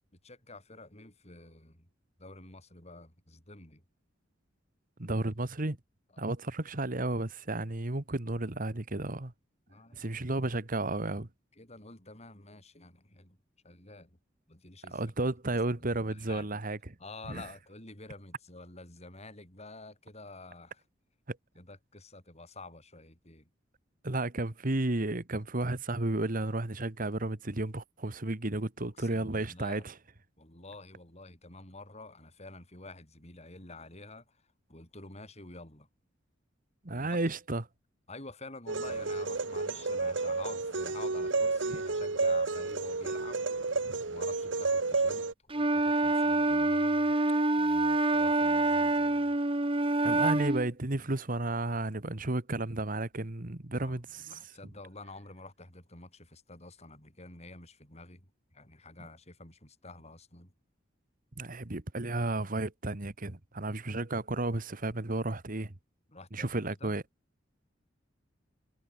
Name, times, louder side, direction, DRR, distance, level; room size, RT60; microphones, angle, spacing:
voice 1, 0.2-1.9 2.2-3.8 6.1-6.3 9.7-10.1 11.6-13.4 13.6-14.2 14.5-15.0 15.9-16.5 17.0-20.8 21.6-23.5 29.0-29.8 30.4-34.4 34.7-35.9 36.9-37.2 38.1-43.7 44.1-47.2 47.6-49.3 53.8-58.3 58.5-60.5 66.1-66.9, left 2 dB, 35° left, 7.7 m, -49 dB
voice 2, 5.0-5.8 6.2-9.3 10.0-11.3 14.9-16.9 17.3-17.4 21.3-21.4 24.0-29.9 36.8-37.7 50.0-54.4 61.4-65.7 66.3-67.0, right 2 dB, 45° right, 1.6 m, -33 dB
sound 1, 38.7-45.3, right 3 dB, 80° right, 1.4 m, -31 dB
Wind instrument woodwind instrument, 45.5-50.7, right 2 dB, 30° right, 1.6 m, -26 dB
head